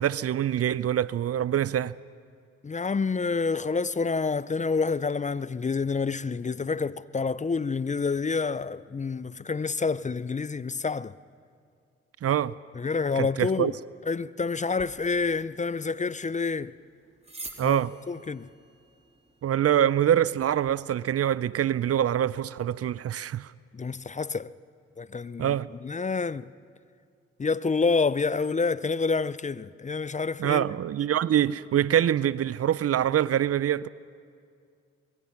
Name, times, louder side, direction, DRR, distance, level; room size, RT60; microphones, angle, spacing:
voice 1, 0.0-1.9 12.2-12.5 13.2-13.7 17.6-17.9 19.4-23.5 25.4-25.7 30.4-33.9, right 10 dB, 55° right, 0.5 m, -25 dB
voice 2, 2.6-11.1 12.7-13.7 14.1-16.7 17.6-17.8 18.1-18.5 23.7-24.5 25.0-26.5 27.4-30.6, left 4 dB, 25° left, 0.5 m, -28 dB
sound 1, 14.7-20.8, right 2 dB, 20° right, 3.2 m, -49 dB
24.5 x 22.0 x 5.9 m
supercardioid pair, 45°, 29 cm